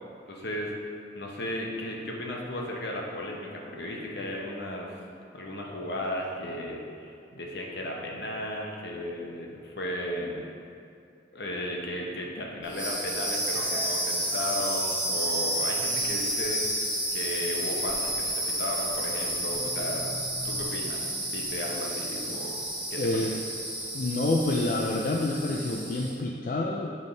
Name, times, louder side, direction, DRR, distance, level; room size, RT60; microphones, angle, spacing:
voice 1, 0.3-0.7 1.1-5.0 5.3-10.5 11.3-16.6 17.1-20.1 20.4-22.6 22.9-23.3, left 1 dB, 70° left, -1 dB, 0.9 m, -35 dB
sound 1, 12.6-26.2, right 1 dB, 5° right, 1.4 m, -31 dB
voice 2, 23.0-23.3 23.9-27.0, left 2 dB, 45° left, -1 dB, 0.3 m, -28 dB
8.3 x 3.6 x 3.9 m, 2.3 s
head